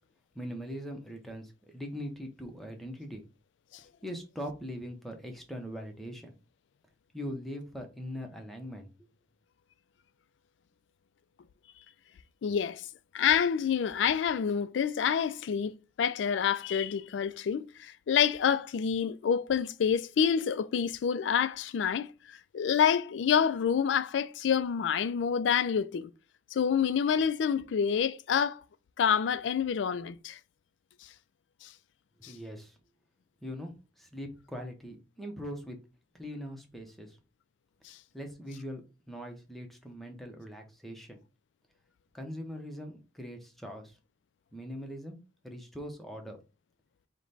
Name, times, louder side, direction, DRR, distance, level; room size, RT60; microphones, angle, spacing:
voice 1, 0.3-3.2 3.8-6.3 7.1-8.9 32.3-32.8 33.4-35.8 36.1-37.2 38.1-38.8 39.1-41.2 42.1-44.0 44.5-45.2 45.4-46.4, equal, ahead, 0.7 m, -41 dB
voice 2, 12.4-12.9 13.1-26.1 26.5-28.6 29.0-30.4 31.6-31.7 32.2-32.3, left 7 dB, 85° left, 0.3 m, -28 dB
4.9 x 2.2 x 3.9 m
head